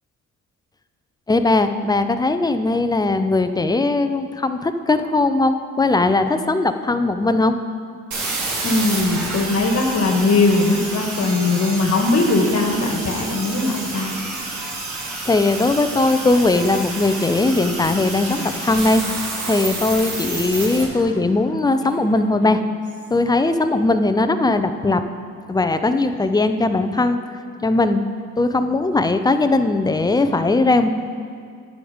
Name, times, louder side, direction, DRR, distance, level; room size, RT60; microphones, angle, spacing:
voice 1, 1.3-7.6 15.3-19.0 19.4-22.6 23.1-25.0 25.5-27.2 27.6-28.1 28.4-30.9, left 2 dB, 15° left, 9 dB, 0.5 m, -19 dB
sound 1, 8.1-20.8, right 2 dB, 70° right, 2.0 m, -29 dB
voice 2, 8.6-14.1, left 3 dB, 55° left, 2 dB, 1.5 m, -19 dB
Female speech woman speaking, 17.2-19.0 19.4-23.2, right 2 dB, 40° right, 1.9 m, -36 dB
9.6 x 5.1 x 7.1 m, 2.2 s
cardioid pair, 90°, 30 cm